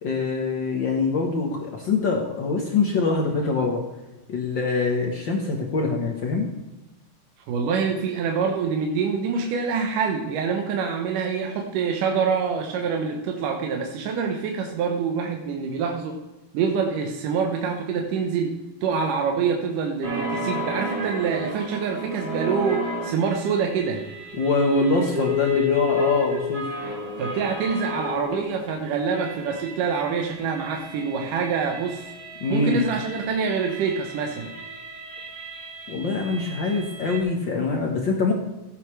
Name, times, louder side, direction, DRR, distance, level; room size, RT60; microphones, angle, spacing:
voice 1, 0.0-3.8 4.3-6.5 24.4-26.6 32.4-32.8 35.9-38.3, left 3 dB, 80° left, 0 dB, 1.0 m, -24 dB
voice 2, 7.5-16.2 16.5-24.0 27.2-32.1 32.5-34.5, right 5 dB, 80° right, 2 dB, 2.5 m, -26 dB
sound 1, 20.0-28.7 29.0-37.2, left 2 dB, 40° right, 2.2 m, -32 dB
16.5 x 8.0 x 3.2 m, 1.0 s
omnidirectional pair, 3.8 m